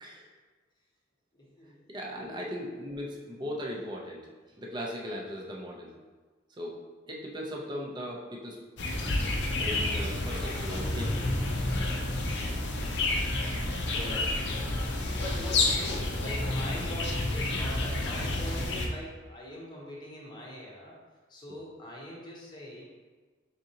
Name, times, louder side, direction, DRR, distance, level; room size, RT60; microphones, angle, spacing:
voice 1, 1.3-1.8 13.9-14.5 15.2-21.0 21.3-22.8, left 1 dB, 20° left, -4 dB, 0.8 m, -42 dB
voice 2, 1.9-4.2 4.6-5.9 6.6-6.7 7.1-8.6 9.5-11.3, equal, 20° right, -1 dB, 0.5 m, -38 dB
sound 1, 8.8-18.9, left 2 dB, 60° left, 0.5 m, -30 dB
4.0 x 3.7 x 2.8 m, 1.4 s
head